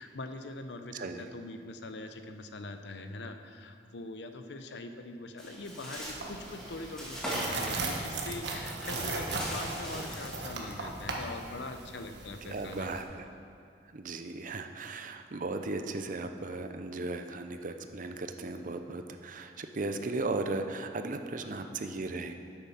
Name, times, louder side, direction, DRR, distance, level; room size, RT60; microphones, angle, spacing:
voice 1, 0.0-13.0 21.6-21.7, left 2 dB, 70° left, 7 dB, 0.7 m, -43 dB
voice 2, 0.9-1.2 12.5-13.2 13.9-22.3, right 3 dB, 50° right, 7 dB, 0.6 m, -36 dB
Bird, 5.4-10.5, equal, 5° left, 2.1 m, -40 dB
sound 1, 6.0-13.0, right 3 dB, 70° right, 1.3 m, -38 dB
9.4 x 8.2 x 5.7 m, 2.4 s
head